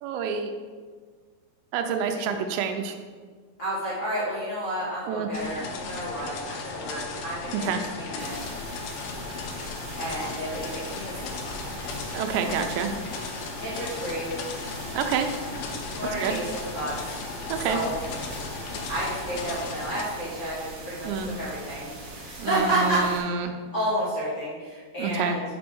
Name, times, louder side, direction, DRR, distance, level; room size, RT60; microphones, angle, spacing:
voice 1, 0.0-0.5 1.7-3.0 5.1-5.3 7.6-7.8 12.1-12.9 14.9-15.3 16.2-16.4 17.5-17.8 21.0-21.3 22.4-23.5 25.0-25.4, right 6 dB, 90° right, 6 dB, 2.9 m, -27 dB
voice 2, 3.6-7.7 8.0-8.4 10.0-11.5 13.6-14.3 16.0-17.0 17.6-17.9 18.9-23.4 23.7-25.4, right 1 dB, 40° left, -10 dB, 1.8 m, -31 dB
sound 1, 5.3-20.0, left 4 dB, 80° left, 2.3 m, -36 dB
sound 2, 8.2-23.2, right 1 dB, 70° right, 1.2 m, -40 dB
6.2 x 5.4 x 6.2 m, 1.5 s
omnidirectional pair, 4.9 m